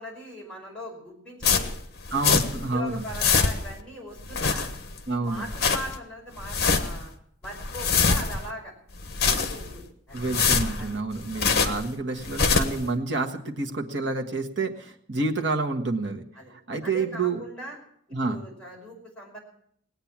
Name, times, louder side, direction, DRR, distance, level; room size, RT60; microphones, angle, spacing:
voice 1, 0.0-1.7 2.5-4.7 5.1-7.1 7.4-8.7 9.2-10.2 10.8-11.0 16.3-16.5 16.8-17.8 18.2-19.4, equal, 5° left, -3 dB, 5.3 m, -40 dB
sound 1, 1.4-2.7 3.0-3.8 4.2-5.0 5.3-6.0 6.4-7.1 7.4-8.5 9.0-9.8 10.2-11.9 12.2-12.9, left 5 dB, 50° left, 1.2 m, -25 dB
voice 2, 2.1-3.0 5.1-5.5 10.1-16.2 16.5-17.4 18.1-18.4, right 3 dB, 60° right, 4 dB, 1.5 m, -28 dB
19.0 x 8.9 x 7.4 m, 0.67 s
head